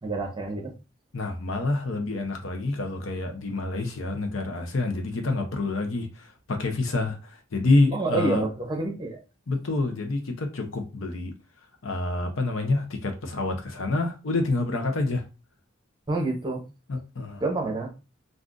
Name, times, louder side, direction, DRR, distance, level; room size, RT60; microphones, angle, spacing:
voice 1, 0.0-0.7 7.9-9.2 16.1-16.6 17.4-17.9, right 2 dB, 25° right, 0.8 m, -28 dB
voice 2, 1.1-8.4 9.5-11.3 11.8-15.2 16.9-17.4, left 2 dB, 80° left, 0.7 m, -27 dB
2.5 x 2.4 x 3.7 m
head